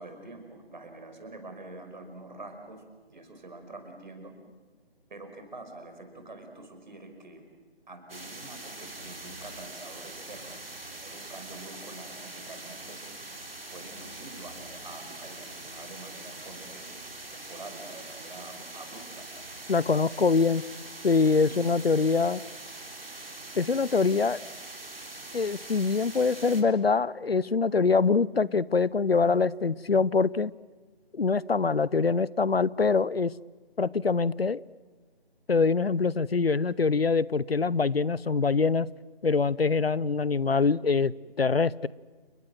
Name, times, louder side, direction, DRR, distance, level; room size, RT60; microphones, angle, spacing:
voice 1, 0.0-2.8 3.1-4.3 5.1-7.4 7.9-10.6 10.9-13.2 13.7-17.0 17.3-19.3 21.4-21.6, right 2 dB, 50° right, 6 dB, 5.5 m, -46 dB
sound 1, 8.1-26.6, right 2 dB, 65° right, 4.0 m, -43 dB
voice 2, 19.7-20.6 21.0-22.4 23.6-24.4 25.3-30.5 31.1-33.3 33.8-34.6 35.5-38.9 39.2-41.1 41.4-41.9, left 4 dB, 70° left, 22 dB, 0.7 m, -24 dB
30.0 x 21.5 x 7.7 m, 1.4 s
figure-of-eight pair, 155°, 31 cm